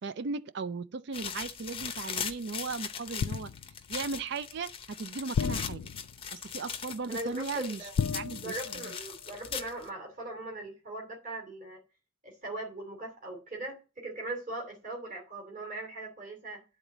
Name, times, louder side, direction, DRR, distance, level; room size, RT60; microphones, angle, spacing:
voice 1, 0.0-3.5 3.9-5.9 6.3-7.8 8.1-8.6 8.8-8.9, right 4 dB, 55° right, 0.4 m, -37 dB
sound 1, 1.1-9.9, left 7 dB, 25° left, 0.6 m, -40 dB
sound 2, 3.2-3.9 5.3-6.3 8.0-9.1 9.3-9.6, left 7 dB, 85° left, 0.4 m, -33 dB
voice 2, 7.1-7.9 8.4-11.8 12.2-16.6, right 2 dB, 40° right, 2.7 m, -40 dB
10.5 x 3.9 x 7.2 m
head